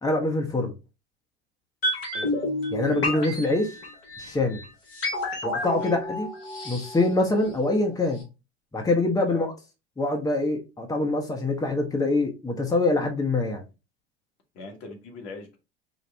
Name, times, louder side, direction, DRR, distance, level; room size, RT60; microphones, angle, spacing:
voice 1, 0.0-0.7 2.7-3.7 4.2-4.6 5.4-6.3 6.6-8.2 8.7-9.5 10.0-13.6, left 2 dB, 10° left, 1.0 m, -24 dB
sound 1, 1.8-7.9 8.1-8.2, left 2 dB, 85° left, 1.6 m, -31 dB
voice 2, 14.5-15.6, left 3 dB, 55° left, 1.4 m, -40 dB
4.5 x 2.4 x 3.2 m
hypercardioid pair, 75°, 30 cm